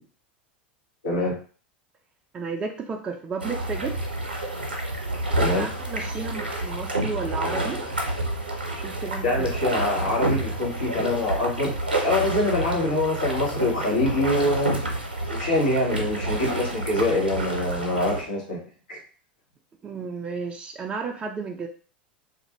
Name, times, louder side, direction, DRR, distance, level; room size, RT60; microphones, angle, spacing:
voice 1, 1.0-1.3 5.4-5.7 9.2-11.7 12.0-14.7 15.3-18.6 18.9-19.0, left 2 dB, 65° left, -2 dB, 1.2 m, -24 dB
voice 2, 2.3-4.0 5.4-7.8 8.8-9.5 19.8-21.7, right 4 dB, 20° right, 3 dB, 0.4 m, -33 dB
sound 1, 3.4-18.2, right 1 dB, 80° right, 0.7 m, -29 dB
2.5 x 2.5 x 3.0 m, 0.40 s
figure-of-eight pair, 85°, 5 cm